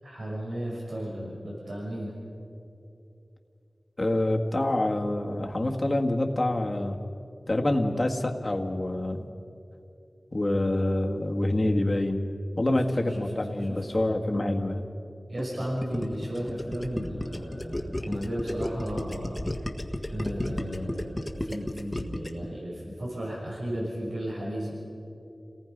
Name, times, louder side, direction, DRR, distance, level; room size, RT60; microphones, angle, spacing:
voice 1, 0.0-2.1 12.7-13.3 13.6-13.8 15.3-19.5 20.1-24.7, equal, 90° right, -5 dB, 6.0 m, -34 dB
voice 2, 4.0-7.0 7.5-9.3 10.3-12.3 12.6-14.9, left 1 dB, 40° left, 2 dB, 1.9 m, -26 dB
Gurgling, 15.4-22.5, left 1 dB, 20° left, 1.7 m, -33 dB
29.5 x 19.0 x 5.3 m, 2.7 s
wide cardioid pair, 70°, 0 cm